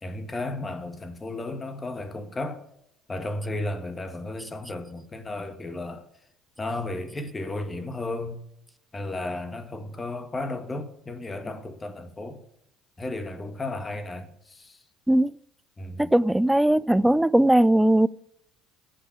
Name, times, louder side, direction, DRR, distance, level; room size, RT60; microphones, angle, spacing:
voice 1, 0.0-2.6 3.1-6.0 6.6-8.4 8.9-12.4 13.0-14.8 15.8-16.1, left 2 dB, 20° left, 1.8 m, -34 dB
voice 2, 16.0-18.1, right 1 dB, 5° right, 0.4 m, -19 dB
15.5 x 6.1 x 7.9 m
figure-of-eight pair, 60°, 0 cm